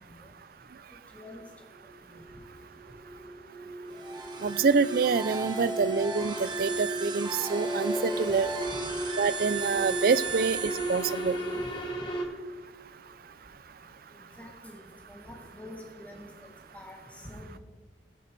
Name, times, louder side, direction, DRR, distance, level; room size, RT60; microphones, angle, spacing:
sound 1, 1.7-12.2, right 1 dB, 25° left, 1.7 m, -35 dB
sound 2, 3.9-11.6, right 3 dB, 25° right, 1.4 m, -36 dB
voice 1, 4.4-8.5 9.2-11.4, right 5 dB, 55° right, 18 dB, 0.4 m, -26 dB
voice 2, 14.4-14.7 15.1-16.3 16.7-16.9 17.3-17.6, left 1 dB, 10° left, 0 dB, 1.9 m, -45 dB
17.5 x 8.0 x 4.6 m, 1.3 s
head